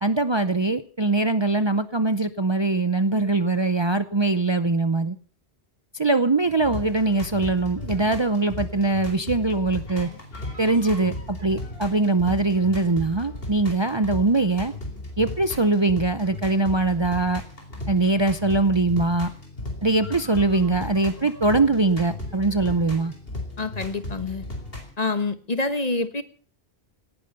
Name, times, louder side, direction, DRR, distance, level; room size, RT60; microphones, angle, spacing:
voice 1, 0.0-5.2 5.9-10.1 10.6-14.7 15.2-17.4 17.9-19.3 19.8-23.1, right 3 dB, 30° right, 11 dB, 0.7 m, -22 dB
sound 1, 6.4-24.9, left 2 dB, 60° left, 4.3 m, -36 dB
voice 2, 23.6-24.4 25.0-26.2, left 3 dB, 40° left, 11 dB, 1.3 m, -26 dB
18.0 x 11.0 x 6.7 m, 0.43 s
omnidirectional pair, 1.1 m